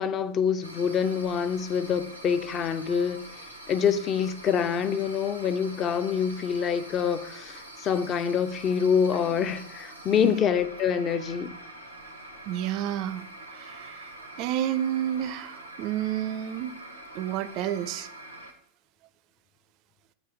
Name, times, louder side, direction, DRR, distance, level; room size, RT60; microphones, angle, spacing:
voice 1, 0.0-3.2 3.7-11.6, left 7 dB, 30° left, 0.5 m, -26 dB
sound 1, 0.6-18.5, right 1 dB, 85° left, 1.0 m, -45 dB
voice 2, 12.5-13.2 13.5-14.1 14.4-16.7 17.1-18.1, right 11 dB, 40° right, 0.4 m, -30 dB
8.4 x 3.0 x 4.6 m
figure-of-eight pair, 90°, 0 cm